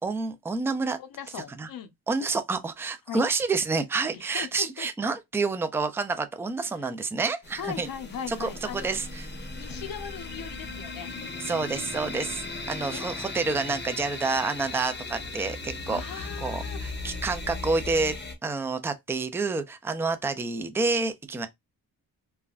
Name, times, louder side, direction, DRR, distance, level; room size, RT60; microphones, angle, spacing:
voice 1, 0.0-1.0 1.6-1.7 2.1-7.9 8.3-9.3 11.4-18.2 18.4-21.5, right 3 dB, 5° right, 0.3 m, -29 dB
voice 2, 1.0-1.9 3.1-3.2 4.1-4.9 7.5-8.9 9.5-11.1 12.9-13.1 15.9-16.8, left 8 dB, 65° left, 0.7 m, -38 dB
sound 1, 7.4-18.4, left 3 dB, 30° left, 0.7 m, -37 dB
3.3 x 2.1 x 2.4 m
wide cardioid pair, 115°, 38 cm